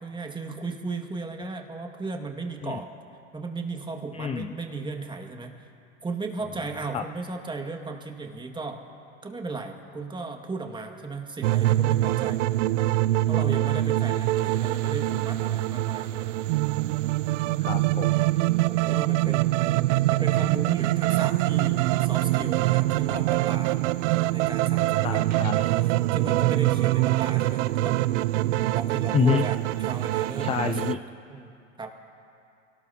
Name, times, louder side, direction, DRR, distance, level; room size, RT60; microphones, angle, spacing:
voice 1, 0.0-2.9 3.3-5.7 6.0-8.8 9.2-12.4 12.8-12.9 13.3-16.3 18.7-19.7 20.1-25.2 26.1-28.1 28.4-30.9 31.3-31.9, right 3 dB, 10° right, 3 dB, 1.8 m, -36 dB
voice 2, 4.1-4.5 6.9-7.0 17.6-18.1 25.0-25.7 29.1-29.5 30.4-31.0, left 7 dB, 15° left, 8 dB, 0.4 m, -27 dB
sound 1, 11.4-30.9, right 16 dB, 65° right, 0.5 m, -24 dB
sound 2, 21.0-30.0, right 7 dB, 40° right, 1.5 m, -48 dB
27.5 x 18.5 x 2.8 m, 2.6 s
hypercardioid pair, 95°, 39 cm